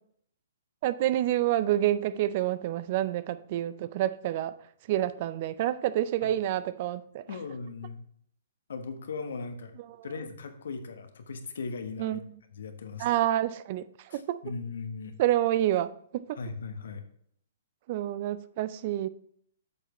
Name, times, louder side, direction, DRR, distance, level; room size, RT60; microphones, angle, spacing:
voice 1, 0.8-4.5 4.9-7.2 12.0-12.2 13.0-14.4 15.2-16.4 17.9-19.1, right 13 dB, 45° right, 0.4 m, -28 dB
voice 2, 7.3-8.0 8.7-9.7 10.0-12.2 12.5-13.1 14.1-15.2 16.4-17.0, left 4 dB, 65° left, 1.2 m, -38 dB
8.6 x 6.8 x 3.1 m
figure-of-eight pair, 125°, 0 cm